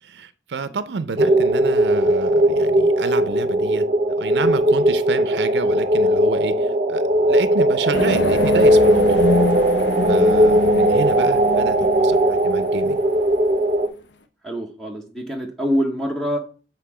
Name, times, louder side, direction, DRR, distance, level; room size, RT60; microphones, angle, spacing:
voice 1, 0.0-3.9 4.2-9.2 10.1-13.0, right 4 dB, 70° right, 0.5 m, -30 dB
sound 1, 1.2-13.9, right 1 dB, 45° right, 0.8 m, -18 dB
sound 2, 7.9-13.1, left 2 dB, 85° left, 0.8 m, -26 dB
voice 2, 14.4-16.4, equal, ahead, 0.7 m, -25 dB
8.1 x 3.5 x 4.7 m
head